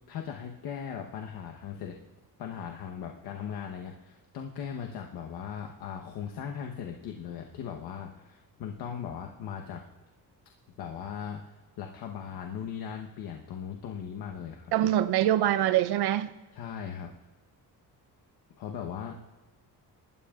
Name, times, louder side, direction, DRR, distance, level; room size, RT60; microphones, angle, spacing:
voice 1, 0.1-2.0 2.4-9.8 10.8-14.7 16.5-17.1 18.6-19.2, left 8 dB, 80° left, 2 dB, 1.1 m, -38 dB
voice 2, 14.7-16.3, right 12 dB, 85° right, 12 dB, 0.7 m, -24 dB
27.5 x 12.5 x 2.4 m, 1.2 s
cardioid pair, 150°, 37 cm